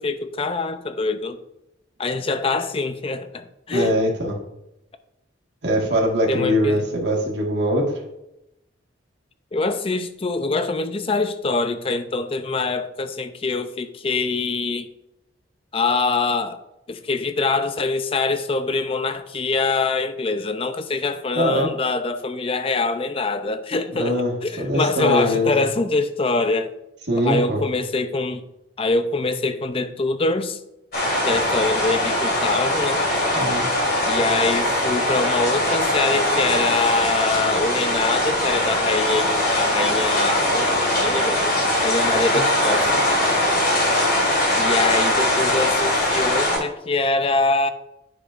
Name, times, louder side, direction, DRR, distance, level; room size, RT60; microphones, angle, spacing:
voice 1, 0.0-1.4 2.0-3.9 6.3-6.8 9.5-14.9 15.7-16.6 16.9-24.2 24.4-26.7 27.2-28.4 28.8-30.6 31.2-33.1 34.0-41.6 41.8-43.0 44.6-47.7, left 3 dB, 30° left, 10 dB, 0.5 m, -24 dB
voice 2, 3.7-4.4 5.6-7.9 21.3-21.7 24.0-25.5 27.1-27.6 33.3-33.7 42.3-42.4, equal, 60° right, -2 dB, 1.7 m, -22 dB
sound 1, 30.9-46.6, left 1 dB, 50° left, 2.2 m, -21 dB
10.0 x 5.9 x 2.5 m, 0.87 s
head